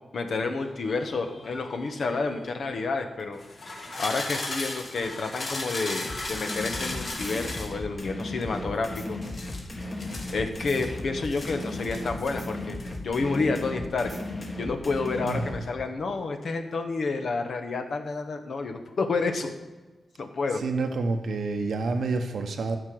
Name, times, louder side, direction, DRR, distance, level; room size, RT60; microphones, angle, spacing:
voice 1, 0.1-3.4 4.0-9.2 10.3-14.1 14.6-19.5 20.2-20.6, left 3 dB, 65° left, 6 dB, 1.3 m, -29 dB
sound 1, 0.6-2.5 3.3-7.8 9.2-10.9 11.2-12.4 12.6-13.0, left 2 dB, 50° left, 2.0 m, -36 dB
sound 2, 6.1-15.6, left 2 dB, 35° left, 1.9 m, -36 dB
voice 2, 20.5-22.8, right 3 dB, 80° right, 6 dB, 0.9 m, -28 dB
12.5 x 5.2 x 7.7 m, 1.2 s
wide cardioid pair, 105°, 0 cm